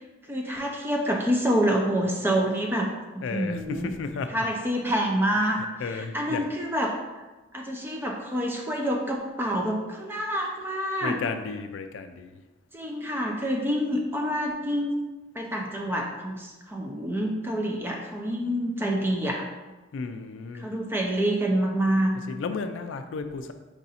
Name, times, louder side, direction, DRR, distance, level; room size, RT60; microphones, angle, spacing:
voice 1, 0.3-3.9 4.3-6.9 7.5-11.2 12.7-14.9 15.3-19.5 20.6-22.1, equal, 10° right, 0 dB, 0.5 m, -27 dB
voice 2, 3.2-4.3 5.8-6.4 11.0-12.4 19.9-20.7 22.3-23.5, left 4 dB, 75° left, 8 dB, 0.3 m, -33 dB
4.7 x 2.6 x 4.1 m, 1.1 s
head